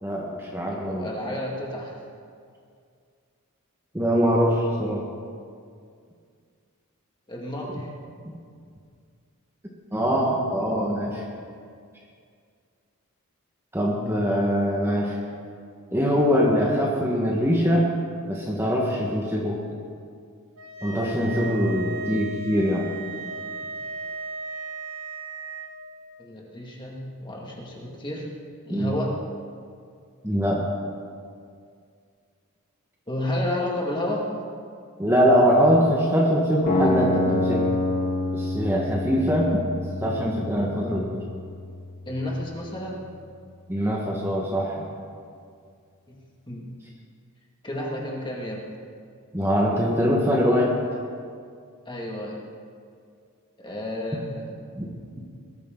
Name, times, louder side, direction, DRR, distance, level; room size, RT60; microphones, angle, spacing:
voice 1, 0.0-1.1 3.9-5.0 8.2-8.3 9.9-11.2 13.7-15.2 15.9-17.9 18.3-19.6 20.8-22.9 28.7-28.9 30.2-30.6 35.0-37.6 38.3-39.7 40.0-41.2 43.7-44.9 49.3-50.7 54.7-54.8, equal, 10° right, -3 dB, 1.5 m, -23 dB
voice 2, 0.7-2.0 7.3-7.9 26.2-28.3 28.6-29.1 33.1-34.3 42.1-43.1 46.1-46.2 46.5-46.7 47.6-48.6 51.9-52.4 53.6-54.5, left 1 dB, 20° left, -2 dB, 2.2 m, -31 dB
sound 1, 20.6-25.7, right 3 dB, 70° right, 1.6 m, -36 dB
sound 2, 36.7-42.7, left 1 dB, 45° left, 2.9 m, -28 dB
20.5 x 13.5 x 3.9 m, 2.2 s
head